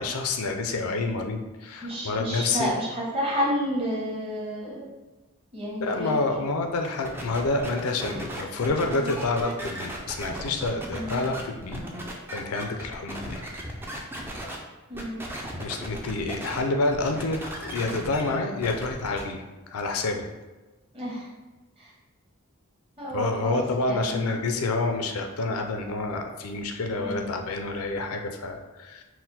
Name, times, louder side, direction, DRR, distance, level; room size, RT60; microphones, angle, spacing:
voice 1, 0.0-2.7 5.8-11.8 12.3-13.4 15.6-20.2 23.1-29.0, left 3 dB, 80° left, 4 dB, 0.4 m, -28 dB
voice 2, 1.8-4.9 5.5-6.3 8.9-9.1 10.9-11.3 14.9-15.2 20.9-21.3 21.8-21.9 23.0-24.5 27.0-27.4, equal, 25° right, -6 dB, 1.1 m, -31 dB
sound 1, 7.0-14.6 14.9-16.6 16.9-19.2, right 1 dB, 10° right, 0.4 m, -37 dB
4.2 x 2.1 x 4.0 m, 1.2 s
head